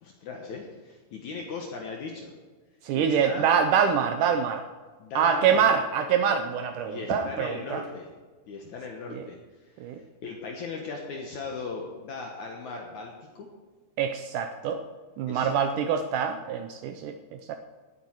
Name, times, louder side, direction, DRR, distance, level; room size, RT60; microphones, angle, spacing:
voice 1, 0.0-2.3 2.9-3.5 5.0-5.6 6.8-8.1 8.5-9.4 10.2-13.5 15.3-15.9, left 4 dB, 60° left, 1 dB, 2.3 m, -38 dB
voice 2, 2.8-4.7 5.2-7.8 9.1-9.2 9.8-10.0 14.0-14.8 15.2-17.1 17.5-17.6, right 7 dB, 85° right, 7 dB, 1.8 m, -25 dB
17.0 x 9.2 x 4.6 m, 1.4 s
omnidirectional pair, 4.5 m